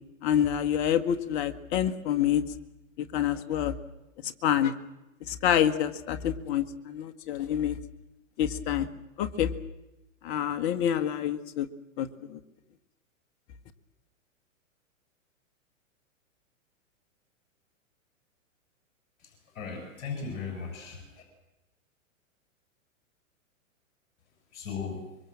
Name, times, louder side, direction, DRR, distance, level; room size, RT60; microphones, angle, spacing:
voice 1, 0.2-2.4 3.1-3.7 4.4-4.7 5.4-7.7 8.4-8.9 9.2-9.5 10.2-11.7 12.0-12.4, left 10 dB, 40° left, 10 dB, 1.7 m, -27 dB
voice 2, 19.2-21.0 24.5-25.1, left 5 dB, 60° left, 3 dB, 7.1 m, -37 dB
25.0 x 23.5 x 7.6 m, 0.98 s
hypercardioid pair, 120°, 40 cm